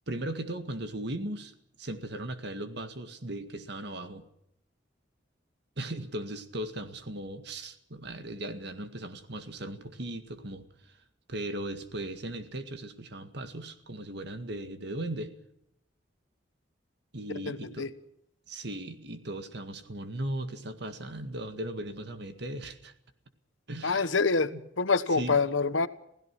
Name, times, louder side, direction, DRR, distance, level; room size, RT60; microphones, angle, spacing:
voice 1, 0.1-4.3 5.8-10.7 11.3-15.3 17.1-17.9 18.5-22.9 23.7-24.1 25.1-25.4, right 1 dB, 60° right, 8 dB, 1.9 m, -37 dB
voice 2, 17.5-17.9 23.8-24.5 24.8-25.9, left 4 dB, 85° left, 13 dB, 1.2 m, -26 dB
28.0 x 16.5 x 6.1 m, 0.76 s
head